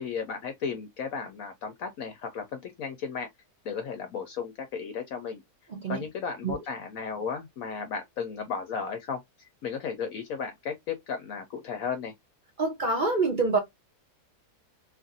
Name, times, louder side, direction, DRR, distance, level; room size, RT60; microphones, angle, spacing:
voice 1, 0.0-3.3 3.6-5.4 5.9-9.2 9.6-12.1, left 6 dB, 70° left, 1.0 m, -34 dB
voice 2, 12.6-13.6, right 3 dB, 50° right, 0.6 m, -26 dB
2.9 x 2.5 x 2.5 m
omnidirectional pair, 1.7 m